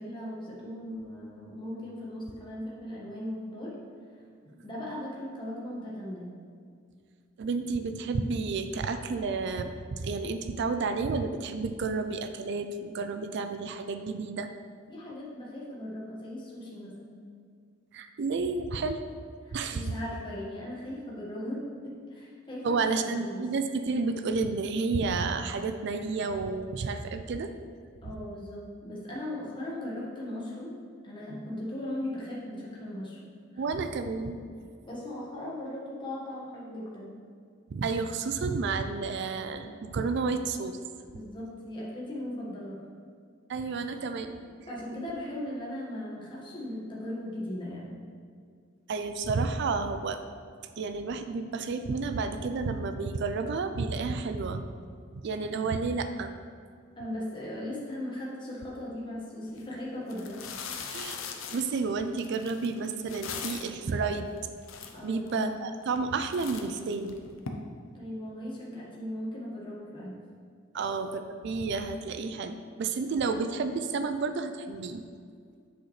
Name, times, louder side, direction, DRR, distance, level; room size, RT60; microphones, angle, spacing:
voice 1, 0.0-3.7 4.6-6.3 14.9-17.2 19.4-23.5 28.0-30.7 31.0-33.2 33.5-33.6 34.8-37.1 41.0-42.8 44.0-44.1 44.7-48.0 57.0-60.4 64.9-65.7 67.9-70.1, left 1 dB, 25° left, -6 dB, 1.5 m, -38 dB
voice 2, 7.4-14.5 17.9-19.0 19.5-19.8 22.6-27.5 33.6-34.4 37.7-40.8 43.5-44.4 48.9-50.2 50.8-54.7 55.2-56.3 60.9-61.2 61.5-64.3 65.0-67.2 70.7-75.0, right 4 dB, 60° right, 9 dB, 0.4 m, -31 dB
sound 1, 59.5-59.6 60.1-63.8 64.4-64.5 64.6-65.3 65.8-66.1 66.3-67.5, left 6 dB, 80° left, 0.7 m, -40 dB
7.9 x 6.4 x 3.2 m, 2.2 s
head